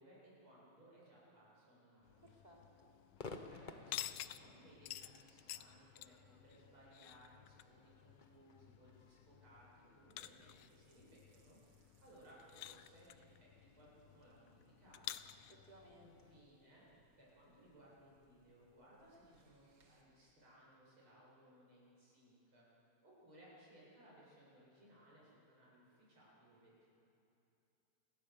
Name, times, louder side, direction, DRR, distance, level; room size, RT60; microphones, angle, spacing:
voice 1, 0.0-2.4 3.2-15.3 16.0-16.9 17.2-26.9, right 1 dB, 70° right, -6 dB, 8.7 m, -64 dB
sound 1, 2.0-16.4, left 13 dB, 85° left, 1.6 m, -53 dB
voice 2, 2.2-3.0 15.5-16.1, right 1 dB, 20° right, -2 dB, 3.6 m, -62 dB
Crowd / Fireworks, 3.2-10.5, left 3 dB, 35° left, 0.7 m, -56 dB
sound 2, 10.2-20.0, right 2 dB, 90° right, 3.1 m, -75 dB
29.0 x 17.5 x 7.0 m, 2.8 s
omnidirectional pair, 2.4 m